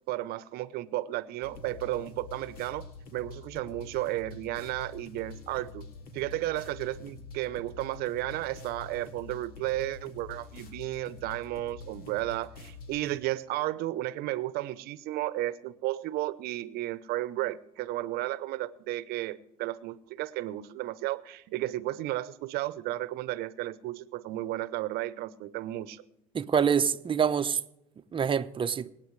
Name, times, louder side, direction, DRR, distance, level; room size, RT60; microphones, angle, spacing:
voice 1, 0.1-2.9 3.1-5.9 6.1-26.0, right 16 dB, 65° right, 0.9 m, -33 dB
sound 1, 1.4-13.2, left 4 dB, 60° left, 2.4 m, -46 dB
voice 2, 26.3-27.6 28.1-28.9, right 7 dB, 30° right, 0.8 m, -26 dB
26.5 x 9.0 x 3.3 m
hypercardioid pair, 80°, 18 cm